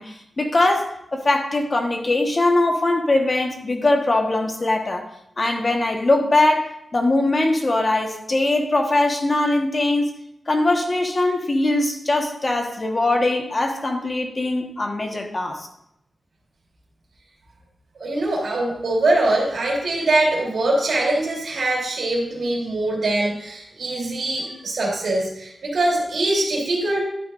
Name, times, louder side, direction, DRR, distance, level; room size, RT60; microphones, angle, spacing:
voice 1, 0.0-5.1 5.4-10.1 10.5-15.7, left 2 dB, 35° left, 3 dB, 1.3 m, -21 dB
voice 2, 18.0-27.0, right 2 dB, 75° right, -2 dB, 3.4 m, -22 dB
12.0 x 9.8 x 2.6 m, 0.79 s
wide cardioid pair, 115°, 0 cm